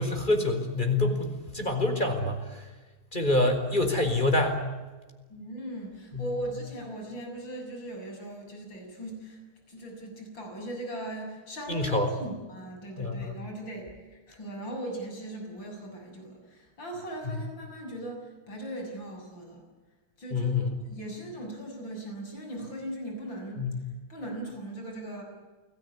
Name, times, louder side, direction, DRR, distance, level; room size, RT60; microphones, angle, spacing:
voice 1, 0.0-2.6 3.1-4.6 6.1-6.3 11.7-12.1 13.0-13.3 20.3-20.7 23.6-23.7, left 2 dB, 20° left, 5 dB, 4.8 m, -26 dB
voice 2, 5.3-9.4 9.7-19.6 20.2-20.5 20.9-25.2, right 1 dB, 60° left, 2 dB, 8.0 m, -39 dB
29.0 x 20.0 x 9.8 m, 1.2 s
omnidirectional pair, 2.3 m